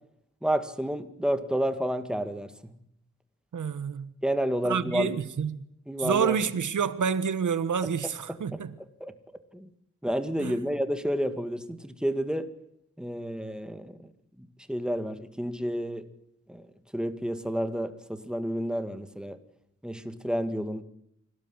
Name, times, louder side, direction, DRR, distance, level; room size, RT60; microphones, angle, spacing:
voice 1, 0.4-2.7 4.2-5.1 5.9-6.4 8.3-8.6 9.0-9.1 9.5-9.7 10.0-12.5 13.0-14.1 14.4-16.0 16.5-16.6 16.9-19.4 19.8-20.8, equal, 5° right, 1.8 m, -30 dB
voice 2, 3.5-4.1 4.6-5.6 6.0-8.7 10.4-10.5, right 7 dB, 85° right, 1.5 m, -28 dB
26.0 x 17.0 x 9.8 m
wide cardioid pair, 170°, 29 cm